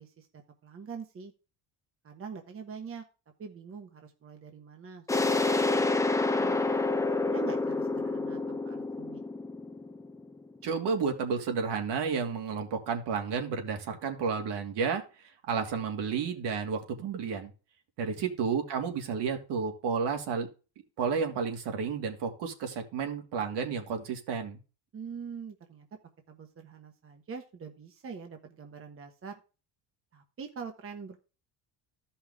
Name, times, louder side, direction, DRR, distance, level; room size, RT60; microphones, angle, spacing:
voice 1, 0.0-1.3 2.0-3.0 3.4-5.4 5.7-5.9 6.4-6.6 7.2-9.2 18.2-18.3 24.9-25.9 26.3-29.4 30.1-31.2, right 6 dB, 30° right, 4 dB, 1.3 m, -44 dB
sound 1, 5.1-10.6, left 3 dB, 5° left, 0.8 m, -28 dB
voice 2, 10.6-15.0 15.5-17.5 18.0-20.5 21.0-24.6, right 6 dB, 65° right, 3 dB, 2.6 m, -31 dB
14.0 x 5.7 x 3.6 m, 0.33 s
cardioid pair, 140°, 43 cm